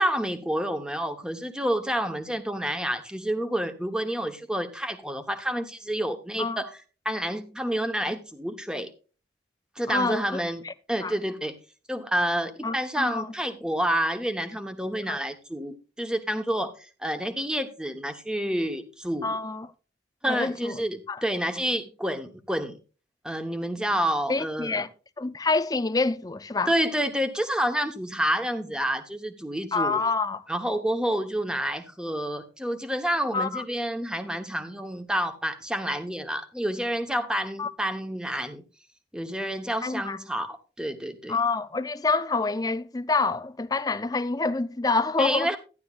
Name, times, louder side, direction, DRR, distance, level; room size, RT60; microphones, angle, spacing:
voice 1, 0.0-6.7 7.0-8.9 9.8-10.6 10.9-11.5 11.9-19.4 20.2-22.8 23.2-24.8 26.7-30.0 30.5-38.6 39.1-41.3 45.2-45.6, equal, 5° right, 1.0 m, -29 dB
voice 2, 9.9-10.7 11.0-11.1 12.6-13.3 15.1-15.2 19.2-19.7 20.3-20.8 21.1-21.2 24.3-24.9 25.2-26.7 29.7-30.4 33.3-33.6 37.6-37.7 39.8-40.2 41.3-45.6, left 3 dB, 20° left, 0.5 m, -27 dB
13.0 x 11.0 x 2.4 m
head